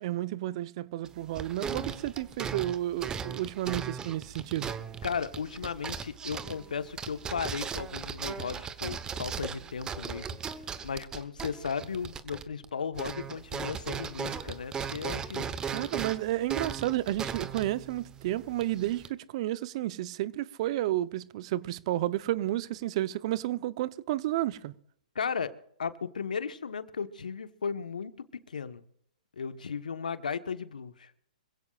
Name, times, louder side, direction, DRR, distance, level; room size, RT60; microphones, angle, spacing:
voice 1, 0.0-4.7 15.7-24.7, right 14 dB, 45° right, 0.8 m, -31 dB
sound 1, 1.1-12.7 12.9-19.1, right 6 dB, 15° right, 1.1 m, -38 dB
voice 2, 5.0-10.3 10.8-15.5 25.1-28.8 29.4-31.1, left 6 dB, 75° left, 1.3 m, -35 dB
26.5 x 16.5 x 2.5 m
hypercardioid pair, 120°, 4 cm